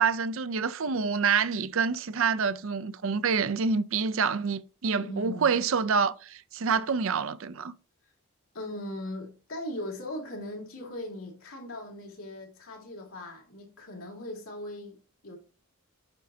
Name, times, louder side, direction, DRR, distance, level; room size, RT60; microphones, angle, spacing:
voice 1, 0.0-7.7, right 5 dB, 65° right, 0.5 m, -27 dB
voice 2, 5.0-5.6 8.5-15.0 15.2-15.4, left 1 dB, 75° left, 2.7 m, -39 dB
8.8 x 5.2 x 2.8 m
head